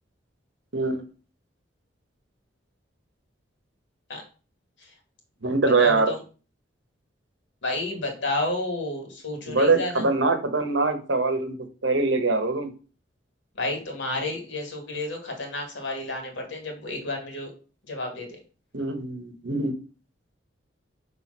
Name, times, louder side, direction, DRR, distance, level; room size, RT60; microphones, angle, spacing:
voice 1, 0.7-1.0 5.4-6.1 9.5-11.6 11.8-12.7 18.7-19.7, right 3 dB, 75° right, 8 dB, 1.1 m, -23 dB
voice 2, 5.8-6.2 7.6-10.1 13.6-17.5 17.9-18.4, left 2 dB, 75° left, 3 dB, 2.1 m, -31 dB
6.1 x 3.4 x 5.5 m, 0.36 s
head